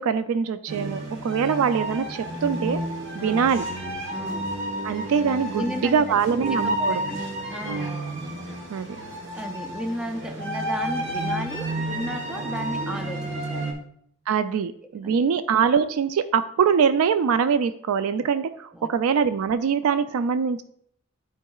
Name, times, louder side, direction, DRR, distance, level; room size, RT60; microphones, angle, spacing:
voice 1, 0.0-2.8 3.1-3.6 4.8-7.0 8.7-8.9 14.3-20.6, right 6 dB, 90° right, 11 dB, 0.3 m, -23 dB
sound 1, 0.7-13.7, right 1 dB, 60° right, 1.3 m, -31 dB
voice 2, 4.1-4.5 5.5-8.0 9.3-13.7 15.0-15.2 18.7-18.9, equal, 5° right, 5 dB, 0.4 m, -34 dB
11.0 x 4.7 x 2.3 m, 0.67 s
head